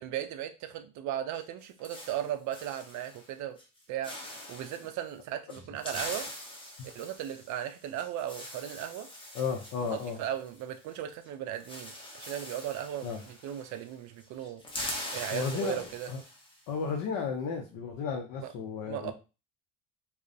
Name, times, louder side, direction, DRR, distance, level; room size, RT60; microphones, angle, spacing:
voice 1, 0.0-3.6 3.9-4.1 4.5-6.3 7.0-9.1 9.8-14.6 15.1-16.1 18.4-18.5 18.8-19.1, right 11 dB, 50° right, 8 dB, 0.5 m, -37 dB
sound 1, 1.3-3.3 3.6-3.8 4.0-4.9 5.5-11.0 11.2-11.3 11.5-13.9 14.2-16.6, left 1 dB, 15° left, 0.7 m, -43 dB
voice 2, 9.3-10.2 13.0-13.2 15.3-15.8 16.1-16.2 16.7-19.1, left 5 dB, 55° left, 1 dB, 0.6 m, -33 dB
2.3 x 2.1 x 2.5 m, 0.31 s
supercardioid pair, 80°, 38 cm